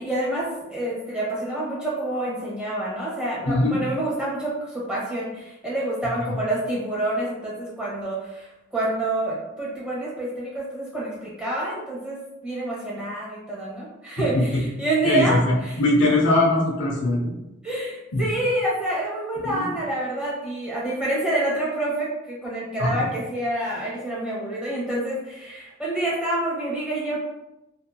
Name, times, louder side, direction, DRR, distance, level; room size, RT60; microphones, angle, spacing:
voice 1, 0.0-8.5 8.7-15.8 17.6-27.2, right 1 dB, 5° right, -7 dB, 0.8 m, -27 dB
voice 2, 3.5-3.8 6.3-6.4 14.3-14.4 15.0-17.3 18.1-18.2 19.4-19.7 22.8-23.1, left 2 dB, 55° left, -3 dB, 0.6 m, -21 dB
2.8 x 2.6 x 2.3 m, 0.93 s
head